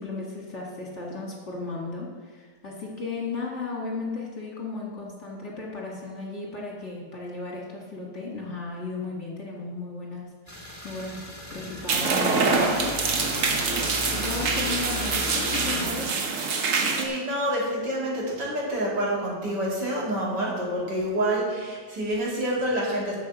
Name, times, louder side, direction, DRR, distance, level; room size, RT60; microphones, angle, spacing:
voice 1, 0.0-11.2 11.5-13.0 13.3-16.1, left 3 dB, 45° left, -2 dB, 1.9 m, -35 dB
sound 1, 10.5-15.8, left 1 dB, 10° left, 1.6 m, -35 dB
sound 2, 11.9-17.1, right 4 dB, 55° right, 1.2 m, -25 dB
voice 2, 16.8-23.2, right 1 dB, 75° right, -4 dB, 3.2 m, -27 dB
8.3 x 6.4 x 6.9 m, 1.5 s
omnidirectional pair, 1.9 m